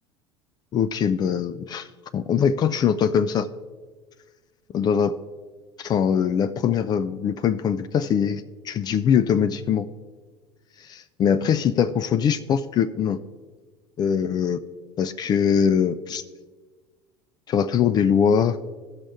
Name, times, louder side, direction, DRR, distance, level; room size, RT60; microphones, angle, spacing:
voice 1, 0.7-1.9 2.1-3.5 4.7-5.2 5.8-9.9 10.8-13.2 14.0-14.6 15.0-16.2 17.5-18.6, left 7 dB, 30° left, 13 dB, 0.4 m, -22 dB
15.5 x 6.2 x 3.5 m, 1.4 s
figure-of-eight pair, 70°, 14 cm